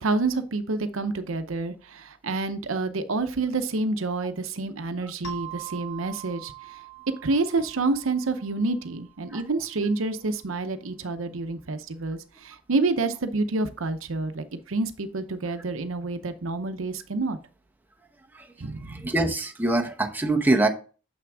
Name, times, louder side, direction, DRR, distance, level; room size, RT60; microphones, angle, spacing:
voice 1, 0.0-6.8 7.2-17.4 18.6-19.0, right 3 dB, 85° right, 10 dB, 0.8 m, -28 dB
sound 1, 5.2-9.6, right 10 dB, 65° left, 1.8 m, -43 dB
voice 2, 18.9-20.7, right 2 dB, 10° right, 2 dB, 1.0 m, -24 dB
7.1 x 5.9 x 3.5 m, 0.35 s
head